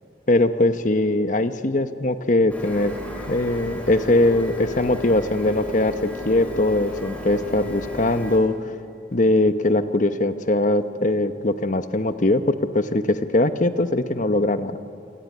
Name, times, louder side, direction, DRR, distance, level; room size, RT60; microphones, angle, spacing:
voice 1, 0.3-3.0 3.3-8.5 9.1-14.9, left 2 dB, 45° left, 10 dB, 1.1 m, -21 dB
Printer, 2.5-8.4, left 1 dB, 10° left, 4.7 m, -34 dB
28.5 x 22.0 x 9.4 m, 2.6 s
head